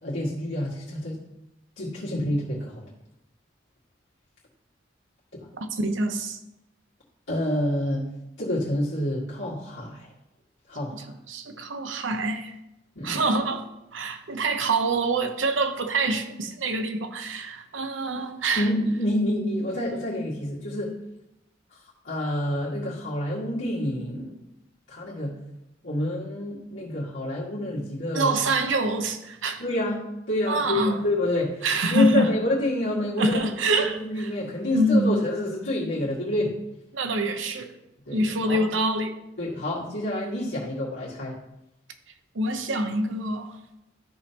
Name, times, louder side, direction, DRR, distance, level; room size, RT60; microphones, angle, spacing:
voice 1, 0.0-1.2 1.8-2.8 5.3-5.5 7.3-8.0 8.4-10.1 10.7-11.0 13.0-13.2 18.6-20.9 22.0-24.4 24.9-25.4 25.8-28.3 29.6-30.0 30.3-33.4 33.7-36.5 38.1-38.6 39.4-41.4, left 1 dB, 80° left, 2.0 m, -28 dB
voice 2, 5.6-6.4 10.9-12.5 13.0-13.7 13.9-18.7 28.1-29.6 30.5-31.0 31.6-32.3 33.2-34.3 34.7-35.2 36.9-37.7 38.1-39.2 42.3-43.6, right 2 dB, 85° right, 0.9 m, -25 dB
13.0 x 5.4 x 3.0 m
head